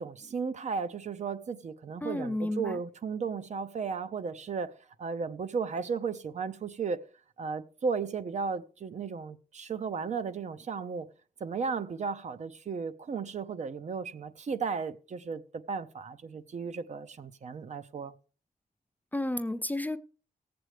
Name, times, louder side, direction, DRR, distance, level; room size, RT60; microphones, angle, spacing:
voice 1, 0.0-7.0 7.4-11.1 11.4-18.1, right 5 dB, 50° right, 0.6 m, -35 dB
voice 2, 2.0-2.8 19.1-20.0, left 1 dB, 10° left, 0.5 m, -32 dB
17.5 x 7.8 x 3.3 m
wide cardioid pair, 115°, 15 cm